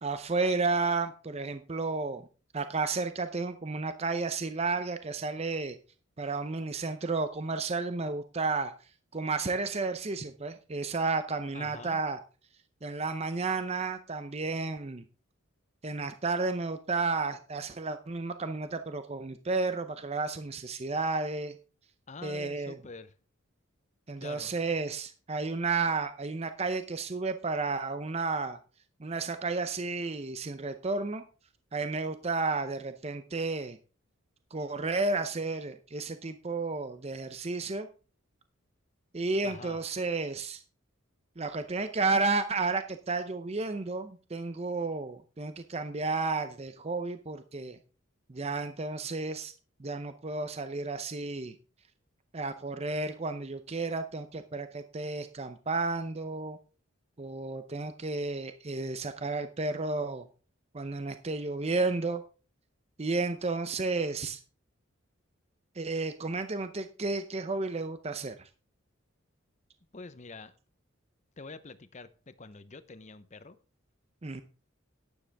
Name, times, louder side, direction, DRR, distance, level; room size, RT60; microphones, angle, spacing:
voice 1, 0.0-2.2 2.5-5.8 6.2-8.7 9.1-12.2 12.8-15.0 15.8-21.6 22.2-22.8 24.1-28.6 29.0-31.2 31.7-33.8 34.5-37.9 39.1-40.6 41.4-47.8 48.3-49.5 49.8-51.6 52.3-56.6 57.2-60.3 60.7-62.2 63.0-64.4 65.8-68.5 74.2-74.4, right 3 dB, 30° right, 0.6 m, -32 dB
voice 2, 11.5-12.0 22.1-23.1 24.2-24.6 39.4-39.8 69.9-70.5 71.4-73.6, left 3 dB, 35° left, 0.8 m, -46 dB
11.5 x 10.0 x 3.5 m
head